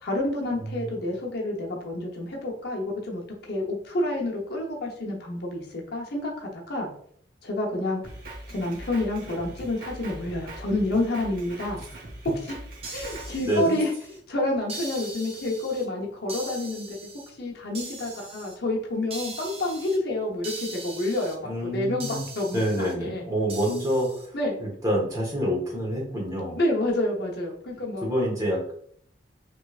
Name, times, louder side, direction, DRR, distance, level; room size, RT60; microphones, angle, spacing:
voice 1, 0.0-6.9 7.4-8.0 8.5-11.8 12.9-13.9 14.3-17.0 17.4-23.3 24.3-24.6 26.6-28.1, left 1 dB, 60° left, -1 dB, 0.8 m, -29 dB
voice 2, 0.6-1.0 13.1-13.8 21.4-22.2 22.5-24.3 24.6-26.6 28.0-28.7, equal, 20° right, -4 dB, 1.1 m, -27 dB
Drum kit, 8.0-13.4, right 1 dB, 55° right, 0.9 m, -41 dB
sound 1, 12.8-14.2 14.7-15.9 16.3-17.3 17.7-18.6 19.1-20.0 20.4-21.4 22.0-22.9 23.5-24.3, right 3 dB, 35° right, 0.6 m, -40 dB
3.2 x 3.1 x 2.4 m, 0.62 s
head